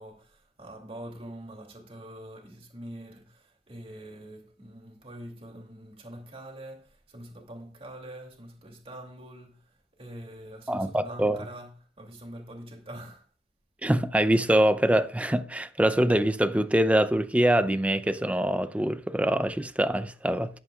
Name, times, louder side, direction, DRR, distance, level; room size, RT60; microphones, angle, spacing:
voice 1, 0.0-13.3, right 1 dB, 35° right, 2.7 m, -44 dB
voice 2, 10.7-11.4 13.8-20.6, right 1 dB, 10° right, 0.6 m, -24 dB
14.5 x 11.0 x 2.4 m
head